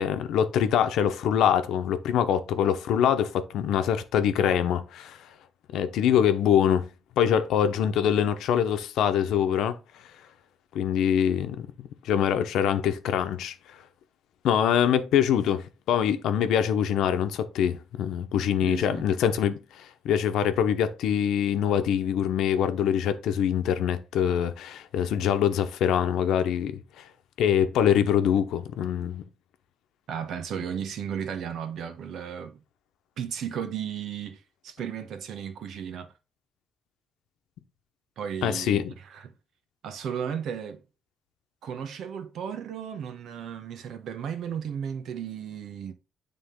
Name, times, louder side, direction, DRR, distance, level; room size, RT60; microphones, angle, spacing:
voice 1, 0.0-5.2 5.7-6.9 7.2-9.8 10.7-13.5 14.4-27.0 27.4-29.2 38.4-38.9, left 9 dB, 85° left, 0.9 m, -24 dB
voice 2, 18.6-19.0 30.1-32.6 33.2-36.1 38.2-39.3 39.8-40.8 41.6-45.9, right 8 dB, 70° right, 1.1 m, -34 dB
9.5 x 3.7 x 3.7 m
cardioid pair, 140°, 0 cm